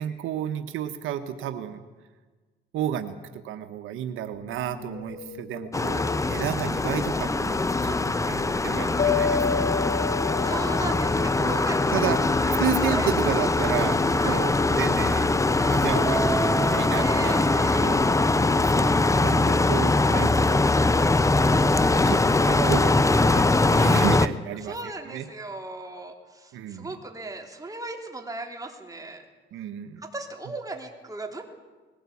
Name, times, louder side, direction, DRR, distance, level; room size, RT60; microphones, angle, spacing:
voice 1, 0.0-1.8 2.7-6.0 6.3-9.8 11.4-12.2 12.6-15.3 15.7-18.0 18.7-21.2 22.1-25.3 26.5-26.9 29.5-30.0, right 10 dB, 90° right, 8 dB, 1.2 m, -32 dB
sound 1, 4.3-16.4, left 6 dB, 60° left, 3.3 m, -43 dB
sound 2, 5.7-24.3, left 2 dB, 15° left, 0.8 m, -22 dB
sound 3, 9.0-12.5 16.0-19.0, left 3 dB, 40° left, 4.2 m, -31 dB
voice 2, 10.4-13.2 14.2-14.4 16.9-18.1 24.6-29.2 30.0-31.4, right 2 dB, 15° right, 3 dB, 3.4 m, -37 dB
20.5 x 17.0 x 8.5 m, 1.3 s
cardioid pair, 90°, 20 cm